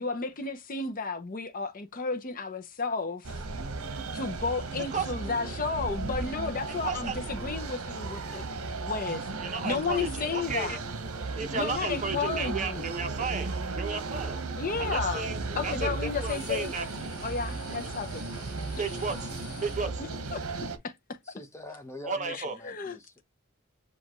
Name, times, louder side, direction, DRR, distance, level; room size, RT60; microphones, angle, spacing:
voice 1, 0.0-3.4 4.1-8.4 8.8-9.3 9.6-10.8 11.5-12.9 14.6-15.3 15.6-16.7 17.2-18.2 20.3-20.4 20.8-20.9 22.3-23.0, left 4 dB, 40° left, 0.6 m, -32 dB
sound 1, 3.2-20.8, right 3 dB, 65° right, 1.0 m, -35 dB
voice 2, 6.7-7.2 9.4-10.8 11.3-14.4 14.8-16.9 17.8-17.9 18.8-19.3 19.6-20.0 22.0-22.6, right 4 dB, 35° right, 0.9 m, -34 dB
sound 2, 14.7-19.8, left 3 dB, 90° left, 1.2 m, -46 dB
voice 3, 21.2-23.2, equal, 10° left, 1.0 m, -44 dB
7.3 x 2.4 x 3.0 m
head